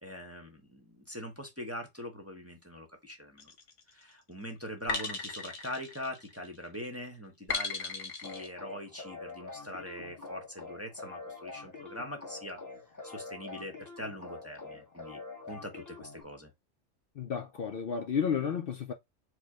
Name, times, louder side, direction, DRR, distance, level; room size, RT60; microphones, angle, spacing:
voice 1, 0.0-3.5 3.9-12.6 13.0-15.2 15.5-16.5, left 1 dB, 15° right, 0.8 m, -42 dB
sound 1, 3.4-3.8 4.9-6.6 7.5-8.5, left 4 dB, 80° left, 1.4 m, -36 dB
sound 2, 8.2-16.2, left 3 dB, 15° left, 1.0 m, -46 dB
voice 2, 17.2-18.9, left 7 dB, 60° left, 0.7 m, -32 dB
4.7 x 2.2 x 4.7 m
omnidirectional pair, 1.2 m